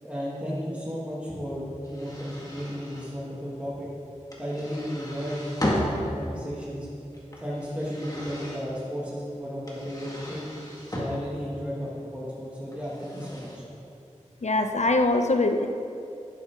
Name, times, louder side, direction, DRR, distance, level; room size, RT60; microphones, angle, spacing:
voice 1, 0.0-3.9 4.4-6.9 7.4-10.5 10.9-13.6, equal, 10° right, -7 dB, 2.1 m, -34 dB
sound 1, 1.8-3.1 4.3-6.1 7.1-8.6 9.6-11.1 12.7-13.6, left 1 dB, 30° left, 2.0 m, -35 dB
voice 2, 14.4-15.7, left 2 dB, 65° left, 6 dB, 0.7 m, -22 dB
11.0 x 9.4 x 3.7 m, 2.6 s
wide cardioid pair, 55°, 13 cm